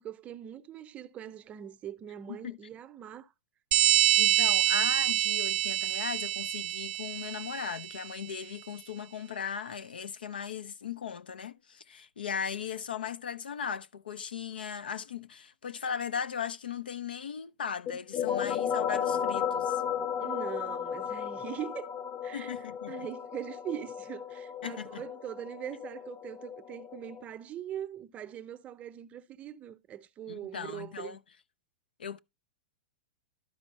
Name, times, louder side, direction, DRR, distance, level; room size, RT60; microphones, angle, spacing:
voice 1, 0.0-3.3 20.2-21.9 22.2-22.5 22.9-31.2, right 10 dB, 25° right, 0.6 m, -42 dB
sound 1, 3.7-8.0, right 12 dB, 70° right, 0.5 m, -26 dB
voice 2, 4.2-19.8 22.3-23.1 24.6-25.0 30.3-31.2 32.0-32.2, left 7 dB, 90° left, 0.5 m, -38 dB
sound 2, 17.9-27.2, left 8 dB, 40° left, 0.8 m, -34 dB
11.5 x 4.5 x 4.0 m
hypercardioid pair, 120°, 5 cm